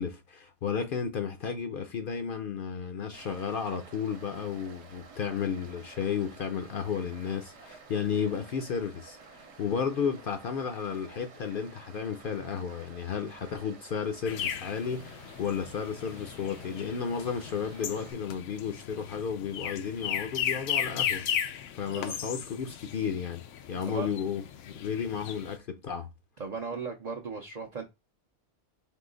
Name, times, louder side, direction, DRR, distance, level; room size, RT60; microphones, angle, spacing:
voice 1, 0.0-21.3 21.7-23.4 23.7-26.1, left 7 dB, 60° left, 0.6 m, -33 dB
Stream, 3.1-18.1, right 4 dB, 70° right, 1.0 m, -52 dB
sound 1, 14.3-25.6, left 9 dB, 90° left, 0.9 m, -36 dB
voice 2, 26.4-27.8, right 5 dB, 50° right, 0.5 m, -37 dB
3.7 x 2.8 x 3.8 m
omnidirectional pair, 1.2 m